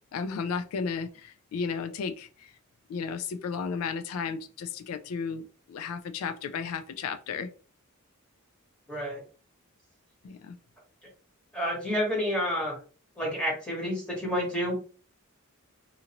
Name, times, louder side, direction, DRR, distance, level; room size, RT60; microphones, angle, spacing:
voice 1, 0.1-2.5 2.9-7.5 10.2-10.6, left 5 dB, 75° left, 8 dB, 0.3 m, -34 dB
voice 2, 8.9-9.2 11.5-12.8 13.2-14.7, equal, 5° left, -3 dB, 1.0 m, -29 dB
2.8 x 2.5 x 2.9 m, 0.37 s
head